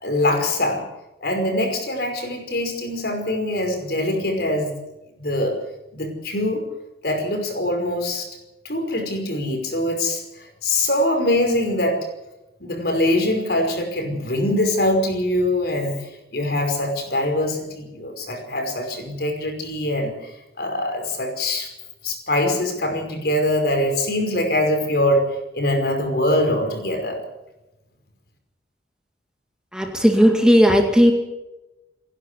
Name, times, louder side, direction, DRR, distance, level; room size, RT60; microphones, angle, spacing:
voice 1, 0.0-0.8 1.2-4.7 5.2-5.6 5.9-6.6 7.0-8.3 8.6-12.0 12.6-20.3 20.6-21.7 22.0-25.3 25.5-27.2, left 1 dB, 60° left, 4 dB, 5.4 m, -23 dB
voice 2, 29.7-31.1, equal, 5° right, 3 dB, 2.1 m, -15 dB
29.0 x 11.5 x 8.4 m, 0.97 s
head